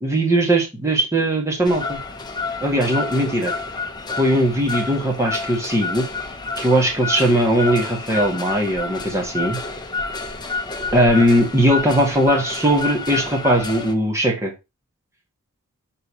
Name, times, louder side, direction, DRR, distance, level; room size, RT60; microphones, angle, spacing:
voice 1, 0.0-2.0 2.6-3.5 4.2-6.1 6.6-9.6 10.9-14.5, right 1 dB, 15° right, 0 dB, 1.8 m, -19 dB
sound 1, 1.6-13.9, left 3 dB, 20° left, 1.0 m, -29 dB
6.8 x 4.1 x 5.5 m, 0.25 s
head